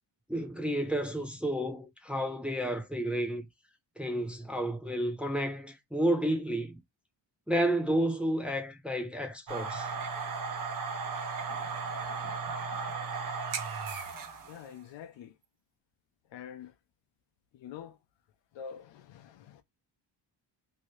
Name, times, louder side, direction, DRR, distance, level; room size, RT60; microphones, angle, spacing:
voice 1, 0.3-3.4 4.0-6.8 7.5-9.9, right 1 dB, 5° right, 0.5 m, -31 dB
sound 1, 9.5-14.6, right 5 dB, 50° right, 0.8 m, -35 dB
voice 2, 14.5-15.3 16.3-16.7 17.5-18.0 18.5-19.6, left 8 dB, 80° left, 0.6 m, -46 dB
2.8 x 2.7 x 3.1 m
cardioid pair, 130°, 43 cm